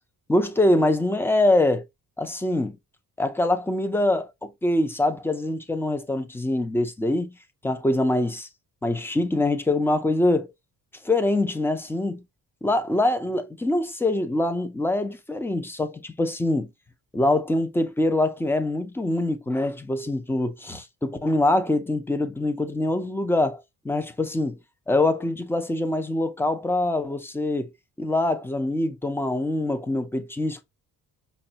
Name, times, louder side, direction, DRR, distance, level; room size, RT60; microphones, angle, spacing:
voice 1, 0.3-1.8 2.2-2.7 3.2-7.3 7.6-8.5 8.8-10.5 11.0-12.2 12.6-16.7 17.1-24.6 24.9-27.7 28.0-30.6, left 1 dB, 5° left, 0.4 m, -24 dB
5.1 x 2.2 x 2.8 m
cardioid pair, 115°, 36 cm